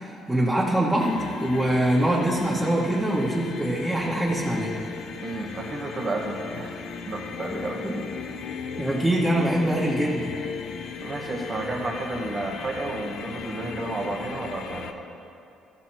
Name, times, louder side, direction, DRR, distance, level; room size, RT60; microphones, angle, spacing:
voice 1, 0.0-4.7 7.8-7.9 8.8-10.4, right 1 dB, 5° right, -8 dB, 1.9 m, -24 dB
sound 1, 1.0-14.9, left 6 dB, 70° left, 0.6 m, -36 dB
voice 2, 5.2-7.8 11.0-14.9, right 2 dB, 40° right, 0 dB, 1.9 m, -31 dB
14.5 x 6.2 x 4.5 m, 2.6 s
supercardioid pair, 75°, 0 cm